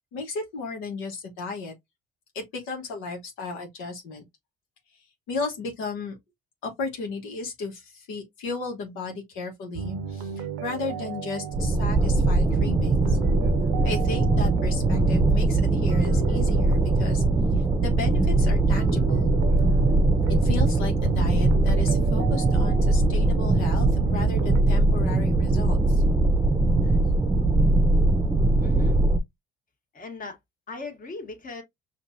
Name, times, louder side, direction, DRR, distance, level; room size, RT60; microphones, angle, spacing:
voice 1, 0.1-1.7 2.3-4.2 5.3-6.2 6.6-13.2 13.8-17.2 17.6-19.4 20.3-26.0 26.8-26.9, left 4 dB, 85° left, 1.3 m, -34 dB
sound 1, 9.7-24.6, right 8 dB, 90° right, 0.7 m, -35 dB
sound 2, 11.5-29.2, right 2 dB, 20° right, 0.6 m, -21 dB
voice 2, 28.6-29.0 29.9-30.4 30.7-31.6, left 3 dB, 45° left, 1.8 m, -38 dB
5.2 x 2.6 x 2.6 m
supercardioid pair, 75°, 20 cm